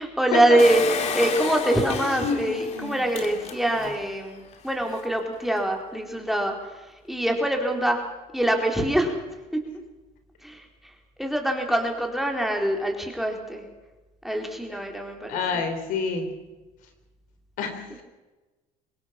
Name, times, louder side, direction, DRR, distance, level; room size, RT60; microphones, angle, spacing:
voice 1, 0.0-6.8 7.1-8.0 8.3-9.1 9.7-9.8 10.4-10.6 11.2-13.6 14.2-15.4, right 1 dB, ahead, 2 dB, 4.1 m, -24 dB
Engine, 0.6-4.0 4.5-4.6 4.8-4.9, left 5 dB, 50° left, 2.7 m, -30 dB
voice 2, 15.3-16.3 17.6-18.0, left 5 dB, 75° left, 7 dB, 4.1 m, -27 dB
24.0 x 20.0 x 6.0 m, 1.1 s
cardioid pair, 105°, 14 cm